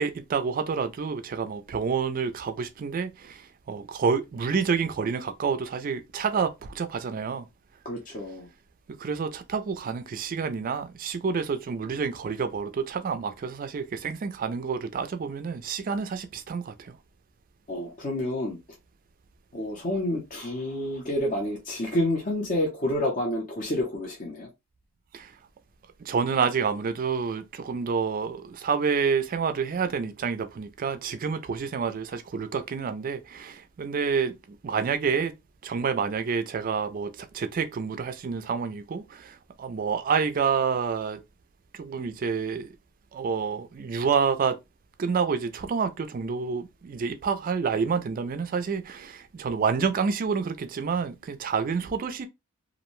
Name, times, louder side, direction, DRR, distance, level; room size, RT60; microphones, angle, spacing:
voice 1, 0.0-7.5 8.9-17.0 25.1-25.3 26.0-35.3 35.6-41.2 41.7-42.8 43.1-44.6 45.0-52.3, right 5 dB, 40° right, 0.3 m, -28 dB
voice 2, 7.8-8.5 17.7-18.6 19.5-24.5, left 1 dB, 35° left, 0.6 m, -29 dB
2.5 x 2.1 x 2.9 m
head